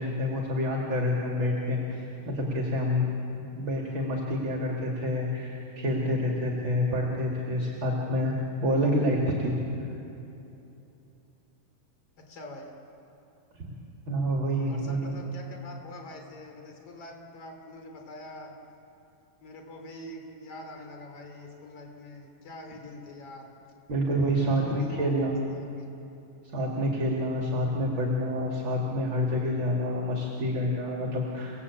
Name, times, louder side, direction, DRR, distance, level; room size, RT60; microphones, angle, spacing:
voice 1, 0.0-3.1 3.5-8.3 8.6-9.5 14.1-15.1 23.9-25.3 26.5-31.6, equal, 40° right, -1 dB, 2.9 m, -28 dB
voice 2, 12.2-12.8 14.7-18.6 19.4-23.5 24.4-26.1, left 1 dB, 45° left, 2 dB, 3.8 m, -45 dB
29.5 x 18.5 x 8.5 m, 2.9 s
omnidirectional pair, 3.9 m